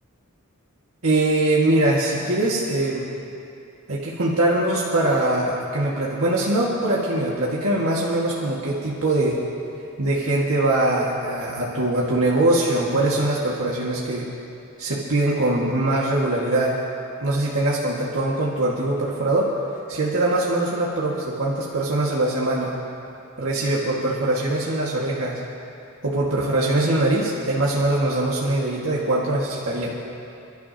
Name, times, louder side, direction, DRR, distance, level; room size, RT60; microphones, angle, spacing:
voice 1, 1.0-3.1 3.9-9.4 10.0-14.3 14.8-16.8 17.2-19.5 19.9-22.7 23.4-25.4 26.0-29.9, right 2 dB, 70° right, -5 dB, 1.8 m, -22 dB
29.0 x 12.5 x 2.8 m, 2.7 s
head